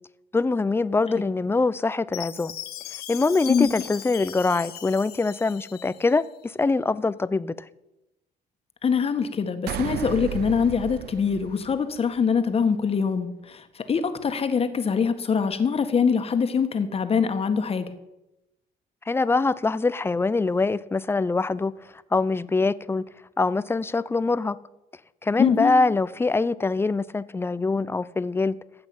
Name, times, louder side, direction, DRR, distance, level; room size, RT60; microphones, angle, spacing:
voice 1, 0.3-2.5 3.1-7.5 19.1-21.7 22.1-23.0 23.4-24.6 25.2-28.6, left 3 dB, 15° left, 0.6 m, -24 dB
Chime, 2.1-6.3, left 10 dB, 65° left, 1.3 m, -39 dB
voice 2, 8.8-17.9 25.4-25.7, left 6 dB, 35° left, 1.6 m, -23 dB
sound 1, 9.7-12.2, right 15 dB, 65° right, 0.5 m, -34 dB
14.5 x 7.8 x 8.9 m
cardioid pair, 110°, 17 cm